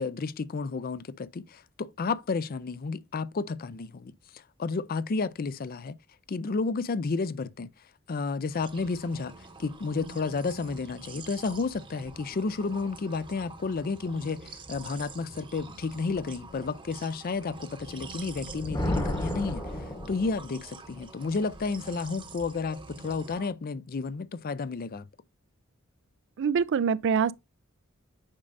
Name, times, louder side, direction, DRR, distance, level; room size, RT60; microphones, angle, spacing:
voice 1, 0.0-5.9 6.3-7.7 8.1-9.3 9.6-19.6 20.1-25.1, left 4 dB, 45° left, 0.4 m, -31 dB
sound 1, 8.5-23.5, right 3 dB, 25° right, 0.9 m, -46 dB
Thunder, 18.3-20.7, left 1 dB, 20° left, 1.1 m, -32 dB
voice 2, 26.4-27.3, right 6 dB, 60° right, 0.4 m, -24 dB
8.8 x 5.3 x 2.5 m
head